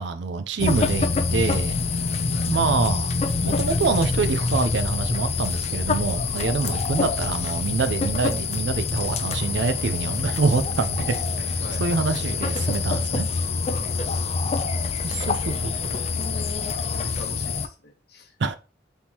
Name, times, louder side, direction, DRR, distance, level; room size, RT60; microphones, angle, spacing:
voice 1, 0.0-1.8 2.5-3.1 3.4-13.3 15.0-15.7 18.4-18.6, right 4 dB, 75° right, 0.5 m, -25 dB
sound 1, 0.6-17.7, left 4 dB, 35° left, 0.4 m, -26 dB
voice 2, 11.6-12.1 13.7-14.5 15.3-15.7 16.3-16.5 16.9-18.3, left 2 dB, 60° left, 1.0 m, -44 dB
3.6 x 2.9 x 4.3 m
head